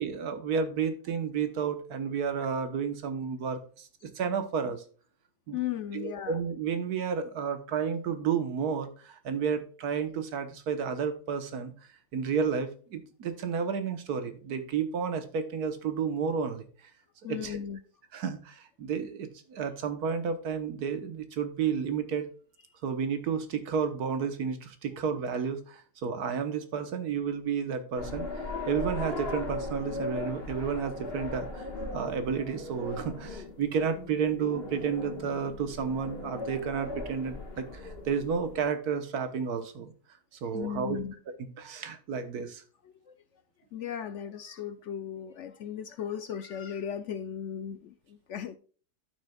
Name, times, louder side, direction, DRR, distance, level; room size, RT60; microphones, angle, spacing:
voice 1, 0.0-4.8 5.5-5.6 5.9-11.7 12.1-16.7 17.3-17.6 18.1-22.3 22.8-28.2 28.7-31.7 31.9-39.9 40.4-41.0 41.4-42.6, right 6 dB, 75° right, 10 dB, 1.6 m, -31 dB
voice 2, 5.5-6.4 17.2-17.8 40.5-41.1 43.1-43.2 43.7-48.6, left 9 dB, 65° left, 11 dB, 0.8 m, -36 dB
sound 1, 28.0-38.6, left 2 dB, 40° left, 1.8 m, -38 dB
11.5 x 6.3 x 2.3 m, 0.40 s
omnidirectional pair, 1.6 m